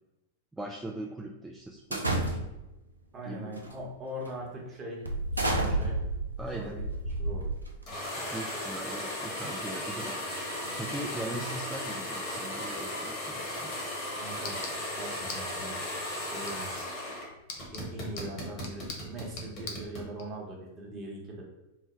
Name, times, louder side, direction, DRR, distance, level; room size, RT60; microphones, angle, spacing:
voice 1, 0.5-2.4 3.2-3.7 6.4-6.8 8.2-10.4 10.8-13.7, right 1 dB, 5° right, -1 dB, 0.3 m, -40 dB
sound 1, 1.9-2.7 3.5-3.8 4.2-4.4 5.0-7.9, right 2 dB, 90° right, 0.5 m, -31 dB
voice 2, 3.1-6.0 6.5-6.8 7.2-7.5 14.2-15.8 16.2-16.8 17.7-21.4, right 1 dB, 25° right, -2 dB, 1.0 m, -41 dB
sound 2, 7.9-17.3 17.6-20.1, left 1 dB, 40° left, 1.3 m, -36 dB
sound 3, 13.6-20.2, left 4 dB, 55° left, 0.6 m, -46 dB
3.3 x 2.1 x 3.1 m, 0.95 s
figure-of-eight pair, 95°, 0 cm